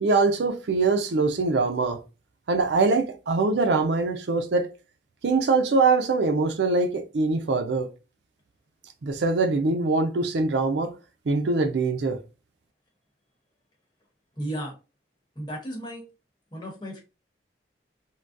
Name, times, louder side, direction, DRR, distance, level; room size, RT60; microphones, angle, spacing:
voice 1, 0.0-2.0 2.5-4.7 5.2-7.9 9.0-10.9 11.3-12.2, right 3 dB, 75° right, 0.5 m, -23 dB
voice 2, 14.4-14.8 15.3-16.0 16.5-17.0, equal, 25° left, 1.1 m, -34 dB
3.7 x 2.2 x 2.4 m
head